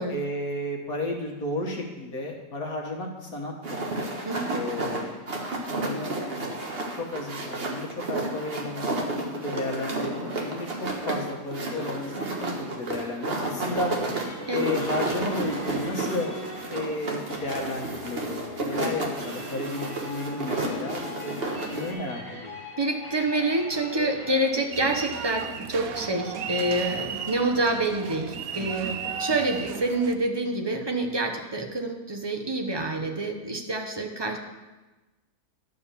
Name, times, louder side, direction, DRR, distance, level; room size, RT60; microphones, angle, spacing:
voice 1, 0.1-3.8 4.5-5.3 5.8-6.1 7.0-13.9 14.5-16.3 16.7-22.6, left 2 dB, 65° left, 1 dB, 1.9 m, -33 dB
sound 1, 3.6-21.9, right 2 dB, 40° right, 1.4 m, -31 dB
voice 2, 4.2-4.6 14.5-14.6 22.8-34.4, right 2 dB, 20° right, 3 dB, 0.8 m, -27 dB
sound 2, 13.5-24.6, left 1 dB, 25° left, 1.7 m, -42 dB
sound 3, 24.7-30.2, right 7 dB, 70° right, 1.1 m, -34 dB
11.5 x 4.7 x 6.9 m, 1.1 s
omnidirectional pair, 1.7 m